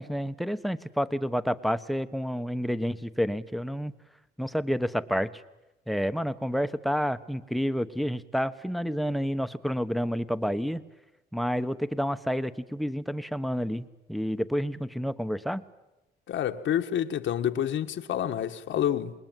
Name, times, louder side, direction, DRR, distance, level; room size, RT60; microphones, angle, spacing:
voice 1, 0.0-3.9 4.4-5.3 5.9-10.8 11.3-15.6, equal, ahead, 1.1 m, -29 dB
voice 2, 16.3-19.1, left 10 dB, 75° left, 1.6 m, -28 dB
28.0 x 20.5 x 9.2 m
cardioid pair, 90°, 20 cm